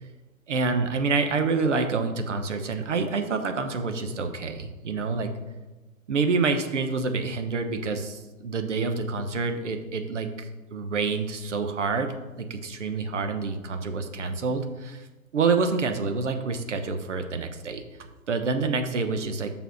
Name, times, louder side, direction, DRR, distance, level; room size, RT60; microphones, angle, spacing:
voice 1, 0.5-5.3 6.1-10.5 10.7-15.0 15.3-17.8 18.3-19.5, right 4 dB, 55° right, 7 dB, 0.9 m, -27 dB
5.6 x 4.7 x 5.9 m, 1.1 s
figure-of-eight pair, 135°, 43 cm